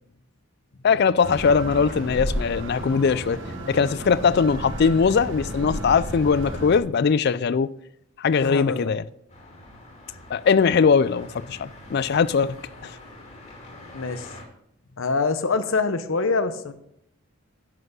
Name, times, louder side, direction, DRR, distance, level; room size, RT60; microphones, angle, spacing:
voice 1, 0.8-3.4 3.7-7.7 8.2-9.0 10.3-12.6 12.8-12.9, left 5 dB, 50° left, 0.3 m, -20 dB
sound 1, 1.2-6.8, equal, 55° right, 1.5 m, -32 dB
voice 2, 8.4-8.9 13.9-14.3 15.0-16.7, left 4 dB, 65° left, 0.8 m, -25 dB
sound 2, 9.3-14.4, left 1 dB, 30° left, 2.3 m, -45 dB
11.0 x 5.9 x 5.5 m
head